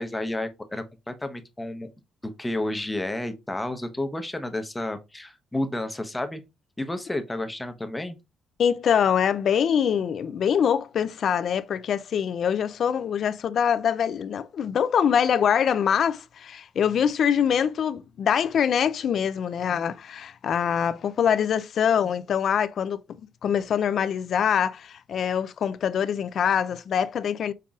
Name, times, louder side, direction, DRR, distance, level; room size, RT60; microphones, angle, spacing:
voice 1, 0.0-1.9 2.2-6.4 6.8-8.2, left 1 dB, 10° left, 0.8 m, -31 dB
voice 2, 8.6-23.0 23.4-27.5, left 8 dB, 60° left, 0.4 m, -24 dB
5.5 x 3.7 x 2.3 m
cardioid pair, 90°, 0 cm